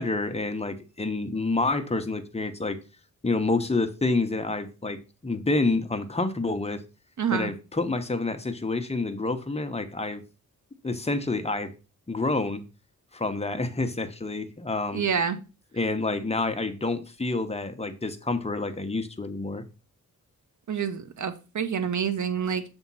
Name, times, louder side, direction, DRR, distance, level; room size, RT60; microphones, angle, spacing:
voice 1, 0.0-2.8 3.2-6.8 7.3-10.2 10.8-11.7 12.1-12.6 13.1-15.0 15.7-19.6, left 3 dB, 20° left, 1.0 m, -28 dB
voice 2, 7.2-7.5 14.9-15.4 20.7-22.6, right 7 dB, 60° right, 0.9 m, -27 dB
7.1 x 3.6 x 5.5 m
cardioid pair, 75°, 33 cm